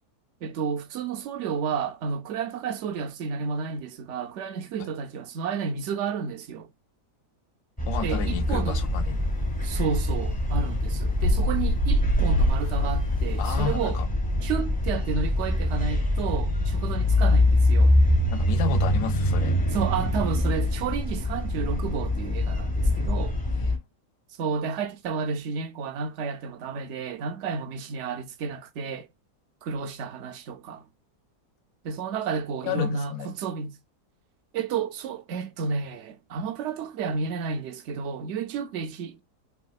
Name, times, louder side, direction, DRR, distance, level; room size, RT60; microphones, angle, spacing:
voice 1, 0.4-6.7 8.0-8.8 9.6-14.0 14.4-18.0 19.7-23.3 24.4-29.1 29.6-30.8 31.8-33.7 34.5-39.2, right 6 dB, 70° right, 0.6 m, -31 dB
sound 1, 7.8-23.8, left 1 dB, 10° left, 0.4 m, -24 dB
voice 2, 7.9-9.3 13.4-14.1 18.3-19.6 23.5-23.7 32.6-33.3, left 8 dB, 75° left, 1.1 m, -32 dB
sound 2, 8.4-13.7, left 1 dB, 90° left, 1.3 m, -27 dB
3.4 x 2.8 x 2.3 m
omnidirectional pair, 1.7 m